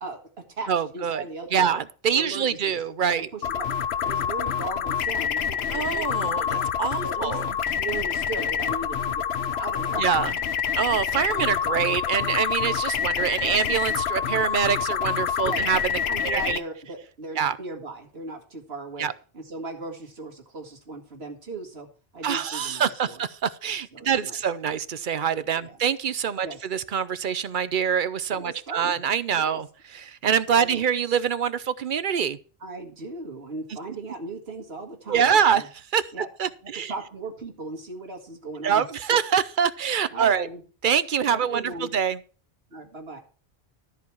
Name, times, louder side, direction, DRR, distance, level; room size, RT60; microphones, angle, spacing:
voice 1, 0.0-1.7 2.1-2.8 3.2-6.7 7.0-7.4 7.7-9.3 9.5-10.1 11.3-11.5 13.4-13.6 15.4-15.7 16.1-21.9 22.1-23.2 23.9-24.5 25.6-25.8 26.4-26.7 28.4-29.0 29.3-29.6 30.6-30.8 32.6-35.7 36.1-36.3 36.6-38.8 39.1-39.2 40.1-40.6 41.3-41.9 42.7-43.2, right 3 dB, 85° right, 2.0 m, -37 dB
voice 2, 0.7-1.2 1.5-3.3 5.7-7.4 10.0-10.3 10.8-16.6 17.4-17.6 19.0-19.1 22.2-32.4 35.1-36.0 36.4-36.9 38.6-40.5 40.8-42.2, right 7 dB, 55° right, 0.8 m, -25 dB
sound 1, 3.4-16.6, left 8 dB, 85° left, 1.0 m, -27 dB
13.0 x 4.7 x 7.0 m
omnidirectional pair, 1.0 m